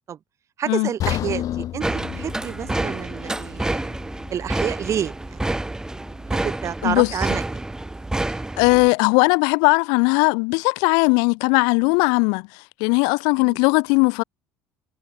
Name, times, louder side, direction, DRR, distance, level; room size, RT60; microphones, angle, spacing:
voice 1, 0.6-3.9 4.3-5.4 6.3-7.6 13.4-13.6, right 9 dB, 45° right, 3.0 m, -29 dB
sound 1, 1.0-5.1 5.4-5.6 6.2-6.3, left 12 dB, 60° left, 6.5 m, -32 dB
sound 2, 1.8-8.9, right 2 dB, 10° right, 0.8 m, -28 dB
voice 2, 6.8-7.1 8.6-14.2, left 36 dB, 80° left, 0.9 m, -19 dB
supercardioid pair, 85°, 7 cm